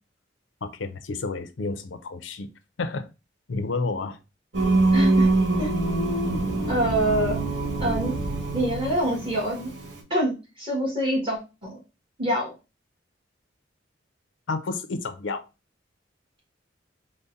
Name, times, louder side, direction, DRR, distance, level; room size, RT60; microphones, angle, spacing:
voice 1, 0.6-2.5 2.8-3.1 3.5-4.2 14.5-15.5, left 3 dB, 75° left, 0.5 m, -30 dB
Singing, 4.5-10.0, right 2 dB, 70° right, 1.4 m, -24 dB
voice 2, 4.9-5.3 5.6-5.7 6.7-7.4 7.8-8.1 8.5-9.7 10.1-11.8 12.2-12.5, right 1 dB, 30° right, 1.3 m, -25 dB
3.9 x 2.1 x 3.8 m
head